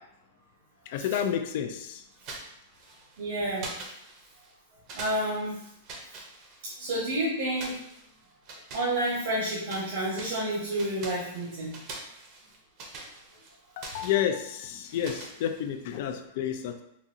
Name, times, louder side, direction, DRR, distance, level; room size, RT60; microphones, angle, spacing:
voice 1, 0.9-2.0 13.8-16.8, left 9 dB, 55° left, 7 dB, 0.3 m, -30 dB
sound 1, 2.1-3.2 3.6-4.5 4.9-7.0 7.6-9.9 10.1-15.9, right 2 dB, 40° right, 0.7 m, -44 dB
voice 2, 3.2-3.7 4.9-5.6 6.6-7.8 8.7-11.8, right 1 dB, 70° right, -7 dB, 1.1 m, -30 dB
4.0 x 2.4 x 2.6 m, 0.76 s
supercardioid pair, 145°, 0 cm